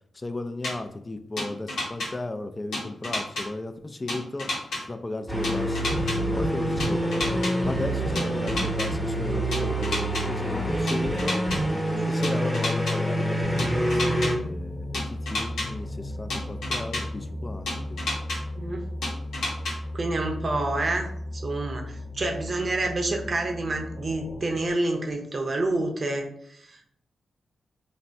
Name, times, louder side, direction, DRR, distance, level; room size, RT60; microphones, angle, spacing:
voice 1, 0.1-4.5 4.9-7.2 7.6-11.4 11.9-18.0, left 2 dB, 30° left, 9 dB, 0.3 m, -35 dB
sound 1, 0.6-0.7 1.4-2.1 2.7-3.4 4.1-4.8 5.4-6.2 6.8-7.5 8.1-8.9 9.5-10.2 10.9-11.6 12.2-12.9 13.6-14.3 14.9-15.7 16.3-17.0 17.7-18.4 19.0-19.7, left 2 dB, 85° left, 0.8 m, -29 dB
sound 2, 5.3-14.3, right 1 dB, 10° left, 0.8 m, -26 dB
sound 3, 13.4-24.7, left 1 dB, 45° left, 0.8 m, -36 dB
voice 2, 18.5-18.9 19.9-21.1 21.3-26.9, right 2 dB, 50° right, 3 dB, 0.6 m, -28 dB
3.2 x 2.1 x 2.5 m, 0.70 s
supercardioid pair, 50°, 0 cm